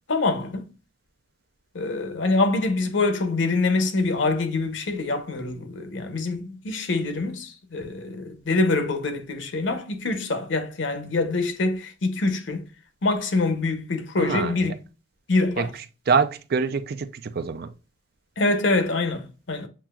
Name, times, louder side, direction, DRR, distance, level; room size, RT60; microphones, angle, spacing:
voice 1, 0.1-0.7 1.7-12.7 13.0-14.7 15.3-15.7 18.4-19.7, left 3 dB, 90° left, 0.8 m, -25 dB
voice 2, 14.2-14.8 15.6-15.7 16.1-17.7, right 5 dB, 55° right, 0.5 m, -25 dB
7.2 x 2.9 x 2.3 m
head